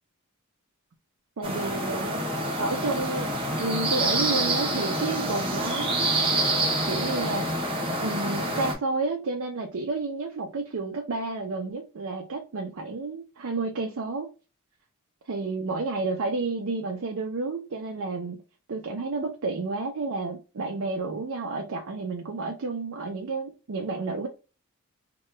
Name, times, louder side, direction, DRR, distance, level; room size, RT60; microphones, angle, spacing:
sound 1, 1.4-8.7, right 1 dB, 25° right, 0.8 m, -27 dB
voice 1, 1.4-2.2 2.6-3.3 3.6-6.0 6.9-14.3 15.3-18.4 18.7-24.3, right 3 dB, 70° right, 0.5 m, -31 dB
2.9 x 2.2 x 3.1 m
head